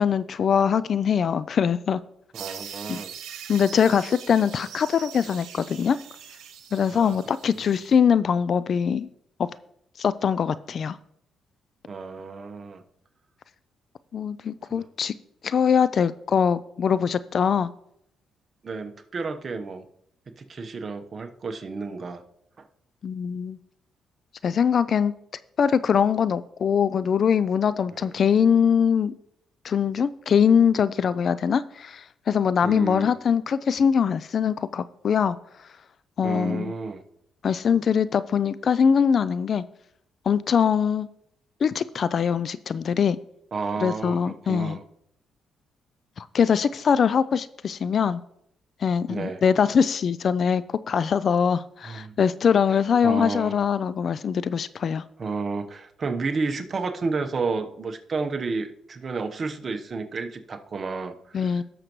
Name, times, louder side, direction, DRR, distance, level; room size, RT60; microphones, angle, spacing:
voice 1, 0.0-2.0 2.9-3.0 3.5-6.0 6.7-9.1 9.4-9.5 10.0-11.0 14.1-15.1 15.4-17.7 23.0-23.6 24.4-25.1 25.6-29.1 29.6-35.4 36.2-36.7 37.4-39.6 40.3-41.1 41.6-43.2 43.8-44.8 46.2-48.2 48.8-55.0 61.3-61.6, left 7 dB, 50° left, 16 dB, 0.4 m, -22 dB
voice 2, 2.3-3.1 6.9-7.2 7.6-7.7 11.9-12.8 14.7-14.9 18.6-19.8 20.4-22.2 27.9-28.1 32.6-33.2 36.2-37.0 43.5-44.8 49.1-49.4 51.8-52.1 52.7-53.6 55.2-61.6, right 4 dB, 40° right, 6 dB, 1.1 m, -31 dB
sound 1, 2.3-7.9, right 9 dB, 85° right, 1.2 m, -42 dB
17.0 x 6.6 x 3.1 m, 0.74 s
cardioid pair, 90°, 0 cm